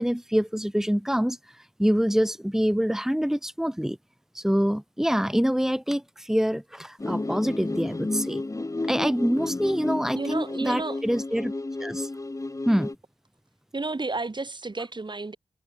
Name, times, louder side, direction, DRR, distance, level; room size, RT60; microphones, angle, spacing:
voice 1, 0.0-4.0 4.3-8.4 8.9-11.5 11.8-12.1 12.7-12.9, equal, 5° right, 4.0 m, -25 dB
sound 1, 7.0-13.0, left 2 dB, 30° left, 1.6 m, -32 dB
voice 2, 10.1-11.0 13.7-15.4, right 3 dB, 45° right, 7.2 m, -31 dB
cardioid pair, 50°, 11 cm